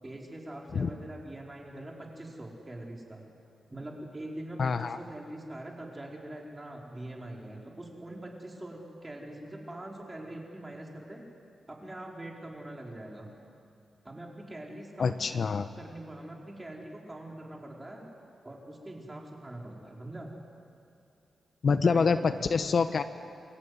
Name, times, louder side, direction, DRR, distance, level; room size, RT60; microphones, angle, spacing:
voice 1, 0.0-3.3 3.7-11.2 11.7-13.3 14.0-15.2 15.7-18.1 18.4-20.3 21.7-22.7, right 1 dB, 20° right, -1 dB, 4.9 m, -43 dB
voice 2, 4.6-5.0 15.0-15.7 21.6-23.0, left 5 dB, 55° left, 10 dB, 0.9 m, -26 dB
28.0 x 21.5 x 9.8 m, 2.5 s
wide cardioid pair, 115°, 0 cm